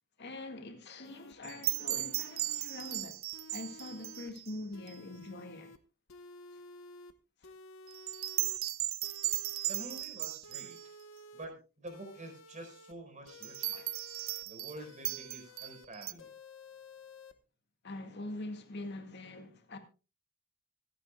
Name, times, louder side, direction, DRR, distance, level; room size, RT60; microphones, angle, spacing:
voice 1, 0.2-3.2 3.5-5.7 7.4-7.5 13.7-13.9 17.8-19.8, left 2 dB, 55° left, 1.9 m, -44 dB
sound 1, 1.0-1.3 1.7-3.0 3.3-4.3 4.7-5.8 6.1-7.1 7.4-8.6 9.0-10.0 10.4-11.5 11.9-12.9 13.3-14.4 14.8-15.9 16.2-17.3, left 2 dB, 70° left, 1.1 m, -53 dB
sound 2, 1.4-4.6 4.9-5.0 7.9-10.8 13.4-14.8 15.0-16.1, right 16 dB, 90° right, 0.7 m, -36 dB
voice 2, 9.7-10.8 11.3-13.8 14.4-16.3, right 1 dB, 35° right, 4.6 m, -47 dB
26.0 x 8.9 x 2.3 m
head